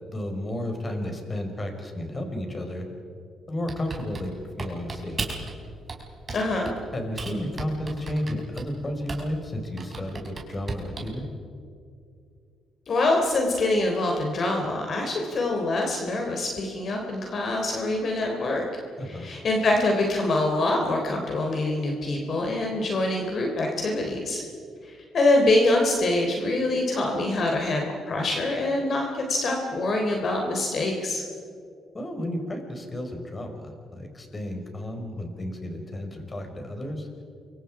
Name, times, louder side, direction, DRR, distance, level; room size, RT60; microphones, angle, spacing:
voice 1, 0.1-2.9 3.5-5.4 6.9-11.3 19.0-19.3 31.9-37.1, left 1 dB, 25° left, 4 dB, 4.9 m, -32 dB
Typing, 3.7-5.5 5.9-6.8 7.2-9.4 9.8-11.2, right 4 dB, 35° right, 4.6 m, -36 dB
voice 2, 6.3-6.7 12.9-18.7 19.1-24.4 24.8-31.2, left 2 dB, 50° left, 1 dB, 3.5 m, -25 dB
29.0 x 24.5 x 4.9 m, 2.4 s
cardioid pair, 90°, 0 cm